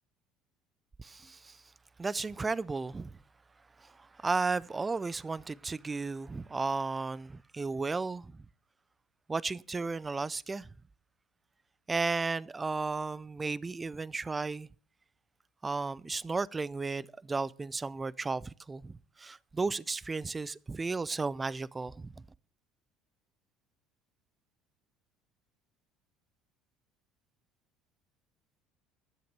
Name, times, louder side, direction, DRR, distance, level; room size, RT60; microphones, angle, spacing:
voice 1, 1.0-1.6 2.0-3.2 3.8-3.9 4.2-8.4 9.3-10.7 11.9-14.7 15.6-22.1, right 3 dB, 20° right, 0.5 m, -34 dB
12.0 x 7.8 x 6.7 m
hypercardioid pair, 75°, 0 cm